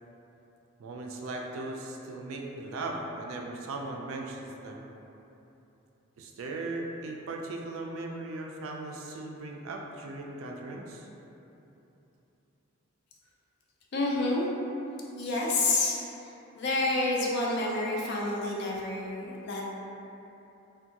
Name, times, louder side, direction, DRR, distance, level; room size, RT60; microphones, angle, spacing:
voice 1, 0.8-4.8 6.2-11.1, right 2 dB, 75° right, 1 dB, 0.3 m, -38 dB
voice 2, 13.9-14.4 15.2-16.3 16.5-19.7, left 2 dB, 50° left, -3 dB, 0.4 m, -29 dB
3.5 x 2.2 x 2.7 m, 3.0 s
head